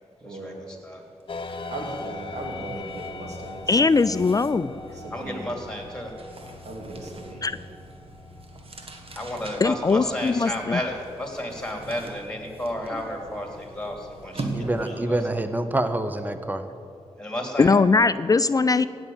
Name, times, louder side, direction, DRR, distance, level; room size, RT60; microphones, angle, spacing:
voice 1, 0.2-0.7 1.5-4.2 4.9-5.5 6.5-7.6 14.5-15.1, right 1 dB, 75° right, 1 dB, 2.7 m, -38 dB
sound 1, 1.2-1.4 1.7-15.1, right 3 dB, 55° right, 1.5 m, -42 dB
sound 2, 1.3-14.9, left 3 dB, 50° left, 1.1 m, -42 dB
voice 2, 3.7-4.7 7.4-7.5 9.6-10.8 17.6-18.9, left 4 dB, 30° left, 14 dB, 0.4 m, -20 dB
voice 3, 5.1-6.1 9.1-14.5 14.8-15.2 17.2-17.7, left 1 dB, 5° left, 2 dB, 3.3 m, -32 dB
voice 4, 14.5-16.6, right 1 dB, 15° right, 9 dB, 0.9 m, -26 dB
16.0 x 6.2 x 8.9 m, 2.5 s
cardioid pair, 65°, 11 cm